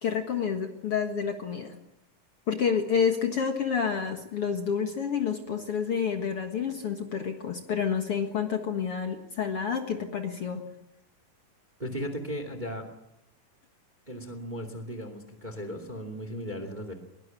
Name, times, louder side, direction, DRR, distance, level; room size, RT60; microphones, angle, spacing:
voice 1, 0.0-1.8 2.5-10.6, left 6 dB, 50° left, 5 dB, 2.2 m, -29 dB
voice 2, 11.8-12.9 14.1-16.9, equal, 15° right, 9 dB, 2.1 m, -36 dB
22.0 x 19.5 x 9.0 m, 0.83 s
omnidirectional pair, 3.9 m